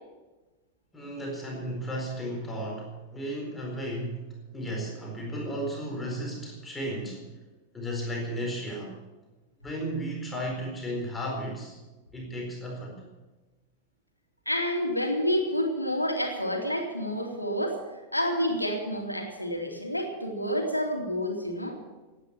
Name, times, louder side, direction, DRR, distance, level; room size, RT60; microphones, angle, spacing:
voice 1, 0.9-7.2 7.7-8.9 9.6-11.8 12.1-13.0, equal, 10° left, -1 dB, 4.4 m, -34 dB
voice 2, 14.5-17.8 18.1-21.8, equal, 85° left, 2 dB, 2.7 m, -29 dB
16.5 x 10.0 x 7.4 m, 1.2 s
figure-of-eight pair, 90°, 0 cm